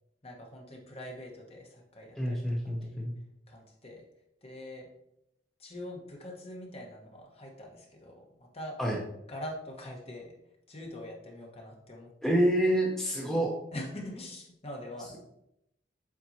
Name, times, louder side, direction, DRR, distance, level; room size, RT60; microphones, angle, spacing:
voice 1, 0.2-2.6 2.8-3.0 3.5-4.0 4.4-4.9 5.6-8.8 9.3-10.3 10.7-12.1 13.7-15.2, left 1 dB, 35° left, 0 dB, 1.3 m, -43 dB
voice 2, 2.2-3.1 8.8-9.0 12.2-13.5, right 1 dB, 5° left, -3 dB, 0.7 m, -27 dB
7.5 x 4.6 x 2.8 m, 0.80 s
head